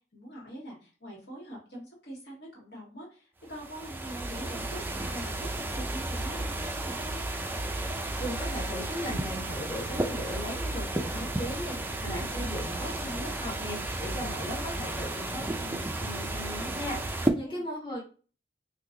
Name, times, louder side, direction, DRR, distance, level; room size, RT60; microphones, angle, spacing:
voice 1, 0.1-7.2 17.2-17.6, right 1 dB, 65° left, -2 dB, 1.6 m, -44 dB
sound 1, 3.5-17.3, right 2 dB, 10° right, 0.3 m, -33 dB
voice 2, 8.2-18.0, equal, 30° left, -4 dB, 1.1 m, -38 dB
2.9 x 2.4 x 3.7 m, 0.37 s
head